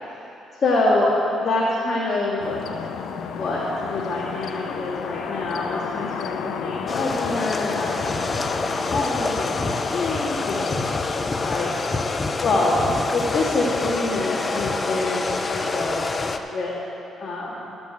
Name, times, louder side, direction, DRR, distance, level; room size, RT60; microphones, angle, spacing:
voice 1, 0.5-2.6 3.0-10.9 11.3-11.7 12.4-12.7 13.1-16.7 17.1-17.7, left 2 dB, 50° left, -9 dB, 2.0 m, -26 dB
sound 1, 2.4-12.1, left 7 dB, 75° left, 0.5 m, -33 dB
sound 2, 6.9-16.4, left 3 dB, 30° left, 0.6 m, -26 dB
13.0 x 5.3 x 7.8 m, 2.9 s
cardioid pair, 90°, 0 cm